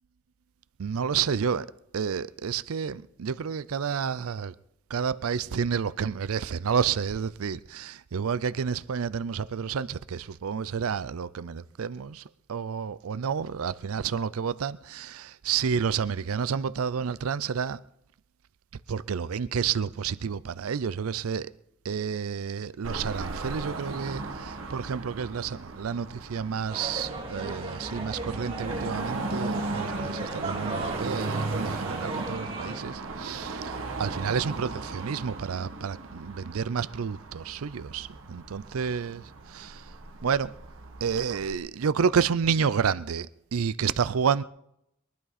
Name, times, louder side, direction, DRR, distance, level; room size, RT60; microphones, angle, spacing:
voice 1, 0.8-4.5 4.9-17.8 18.9-21.5 21.8-40.0 40.2-40.6 41.0-44.4, right 6 dB, 85° right, 0.5 m, -30 dB
Car passing by / Traffic noise roadway noise / Engine, 22.8-41.5, right 2 dB, 65° right, 1.6 m, -37 dB
sound 1, 26.7-32.8, right 2 dB, 25° right, 2.6 m, -36 dB
22.5 x 11.5 x 4.2 m
head